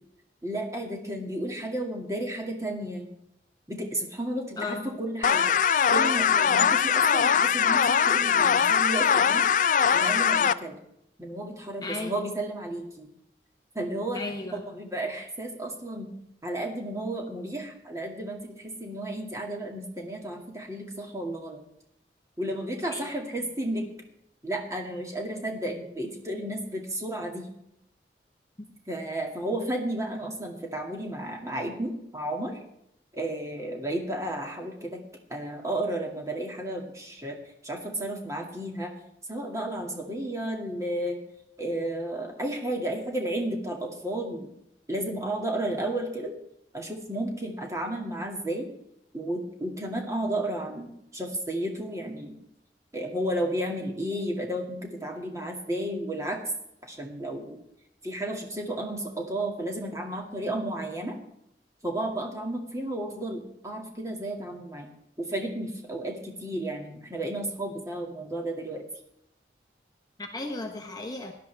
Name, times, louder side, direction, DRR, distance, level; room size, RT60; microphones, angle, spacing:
voice 1, 0.4-3.1 3.7-5.4 5.9-9.5 9.9-10.8 11.2-13.1 13.7-14.2 14.5-16.1 16.4-21.6 22.4-23.9 24.4-27.5 28.9-32.6 33.1-35.0 35.3-37.4 37.6-38.9 39.3-41.2 41.6-44.5 44.9-46.3 46.7-48.7 49.1-52.3 52.9-56.4 56.9-57.6 58.0-61.2 61.8-64.9 65.2-68.8, right 1 dB, 20° right, 0 dB, 2.2 m, -32 dB
voice 2, 4.6-5.0 11.8-12.1 14.1-14.6 22.9-23.1 70.2-71.3, left 2 dB, 20° left, 3 dB, 1.0 m, -35 dB
sound 1, 5.2-10.5, left 7 dB, 45° left, 0.4 m, -22 dB
17.5 x 11.5 x 3.5 m, 0.77 s
head